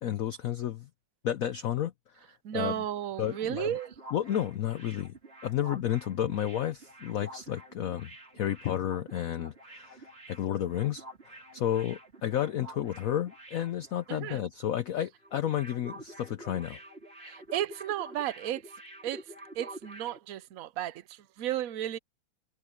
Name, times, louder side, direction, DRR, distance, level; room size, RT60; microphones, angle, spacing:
voice 1, 0.0-0.9 1.2-1.9 2.5-2.7 3.2-3.7 4.1-5.1 5.4-16.8, left 11 dB, 75° left, 0.7 m, -32 dB
voice 2, 2.4-3.9 14.1-14.4 17.2-18.7 19.0-22.0, right 11 dB, 65° right, 0.8 m, -34 dB
sound 1, 3.0-14.5 14.8-14.9 15.2-20.2, right 1 dB, 30° right, 3.6 m, -48 dB
omnidirectional pair, 2.2 m